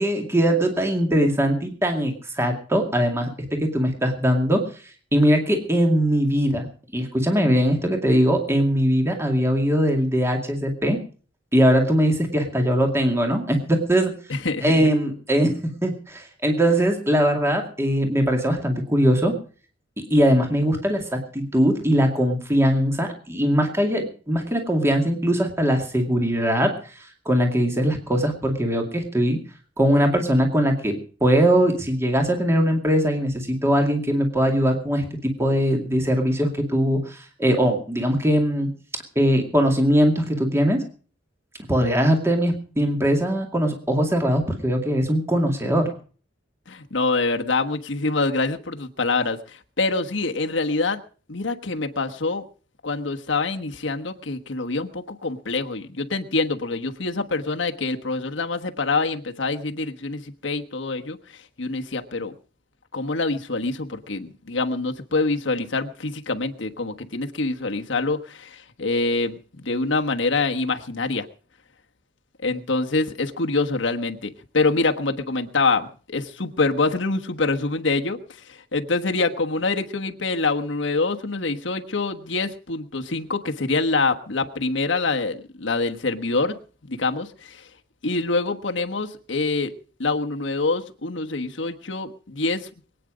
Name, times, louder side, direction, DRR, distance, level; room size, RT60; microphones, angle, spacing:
voice 1, 0.0-4.7 5.1-6.7 6.9-11.0 11.5-14.1 14.6-19.3 20.0-29.4 29.8-38.7 39.2-40.8 41.7-45.9, equal, 15° right, 3 dB, 2.3 m, -21 dB
voice 2, 14.3-14.9 46.7-51.0 51.3-52.4 52.8-62.3 62.9-71.3 72.4-86.5 86.8-87.7 88.0-89.7 90.0-92.7, left 3 dB, 75° left, 5 dB, 1.3 m, -25 dB
23.0 x 9.3 x 5.0 m, 0.40 s
head